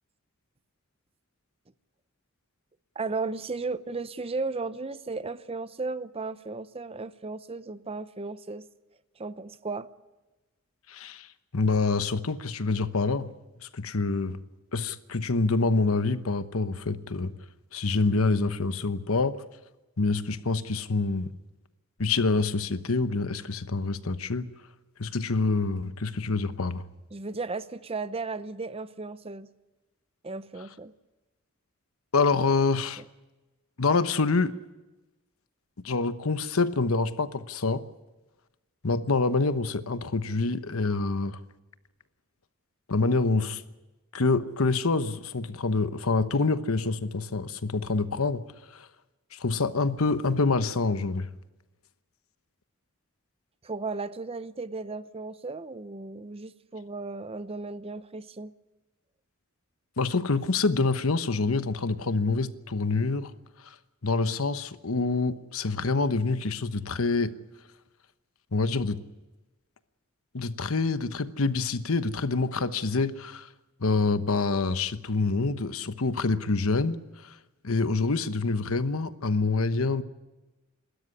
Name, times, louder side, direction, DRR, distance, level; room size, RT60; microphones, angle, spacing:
voice 1, 2.9-8.6 9.2-9.9 27.1-29.5 30.2-30.9 53.6-58.5, right 3 dB, 30° right, 0.7 m, -35 dB
voice 2, 10.9-13.3 13.6-14.4 14.7-17.3 17.7-19.4 20.0-21.3 22.0-24.5 25.0-26.8 32.1-33.0 33.8-34.5 35.8-37.8 38.8-41.4 42.9-43.6 44.1-48.9 49.3-51.3 60.0-63.3 63.6-63.8 64.0-67.3 68.5-69.0 70.3-73.5 73.8-77.4 77.6-80.0, left 3 dB, 75° left, 1.1 m, -26 dB
28.0 x 13.0 x 9.7 m
head